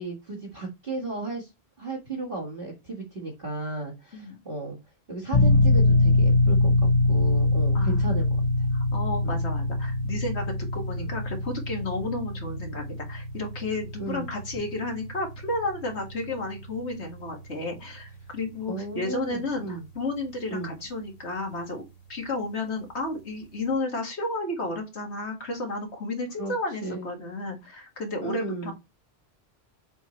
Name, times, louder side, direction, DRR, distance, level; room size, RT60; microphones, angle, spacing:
voice 1, 0.0-1.5 1.8-4.8 5.1-8.2 9.2-9.5 11.0-11.1 14.0-14.3 18.7-19.9 20.5-20.7 26.4-26.5 26.8-27.1 28.2-28.7, right 2 dB, 55° right, 2.0 m, -34 dB
sound 1, 5.3-19.7, left 2 dB, 40° left, 1.0 m, -25 dB
voice 2, 7.7-8.2 8.7-21.8 22.1-28.7, left 2 dB, 85° left, 2.1 m, -32 dB
6.9 x 4.5 x 3.1 m
omnidirectional pair, 1.1 m